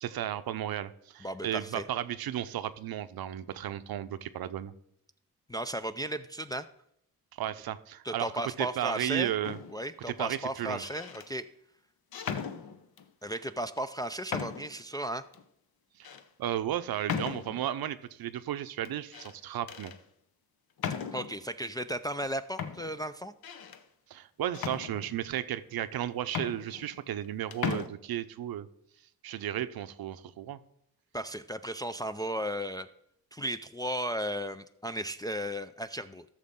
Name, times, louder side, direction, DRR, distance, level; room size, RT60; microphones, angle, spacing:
voice 1, 0.0-4.7 7.4-8.3 8.6-9.6 10.1-10.8 16.0-16.1 16.4-19.9 24.1-28.7 29.2-30.6, right 11 dB, 65° right, 13 dB, 0.7 m, -34 dB
voice 2, 1.2-1.8 5.5-6.7 8.0-9.3 9.7-11.5 13.2-15.2 21.1-23.3 31.1-32.9 33.3-36.3, right 1 dB, 10° left, 8 dB, 0.3 m, -35 dB
sound 1, 9.4-9.9 10.7-11.3 12.1-13.1 13.8-13.9 14.3-14.8 15.3-15.4 16.0-16.2 17.1-17.7 18.8-19.3 19.7-20.0 20.8-21.4 22.2-22.3 22.6-23.8 24.5-25.4 26.0-26.1 26.3-27.3 27.5-27.9, left 7 dB, 65° left, 0.9 m, -37 dB
13.5 x 6.6 x 3.7 m, 0.74 s
cardioid pair, 80°, 39 cm